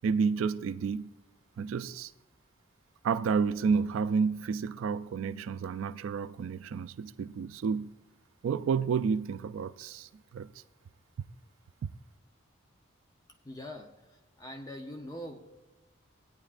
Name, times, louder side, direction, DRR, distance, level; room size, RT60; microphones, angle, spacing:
voice 1, 0.0-1.1 1.6-2.1 3.0-7.9 8.4-10.6 11.8-11.9, right 5 dB, 65° right, 0.3 m, -30 dB
voice 2, 13.4-15.4, left 1 dB, 15° left, 0.6 m, -43 dB
16.5 x 9.5 x 2.5 m
head